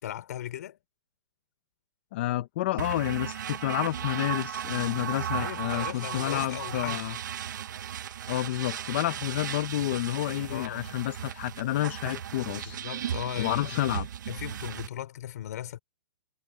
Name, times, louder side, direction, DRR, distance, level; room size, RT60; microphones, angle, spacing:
voice 1, 0.0-0.8 5.4-7.0 10.5-11.0 12.6-14.0 14.3-15.8, left 12 dB, 45° left, 4.5 m, -38 dB
voice 2, 2.1-7.2 8.3-12.8 13.4-14.1, left 15 dB, 30° left, 0.7 m, -30 dB
sound 1, 2.8-14.9, right 9 dB, 55° right, 0.7 m, -36 dB
hypercardioid pair, 175°, 12 cm